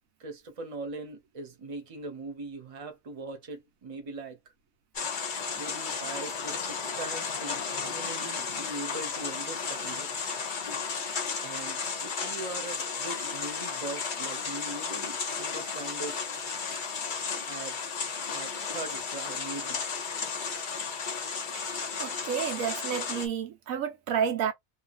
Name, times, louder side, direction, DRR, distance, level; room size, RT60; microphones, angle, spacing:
voice 1, 0.2-4.4 5.6-10.1 11.4-16.2 17.5-17.8 18.3-19.8, right 3 dB, 30° right, 0.8 m, -41 dB
sound 1, 4.9-23.3, left 5 dB, 45° left, 0.8 m, -34 dB
voice 2, 21.5-24.5, right 8 dB, 90° right, 1.1 m, -31 dB
2.7 x 2.4 x 2.4 m
omnidirectional pair, 1.4 m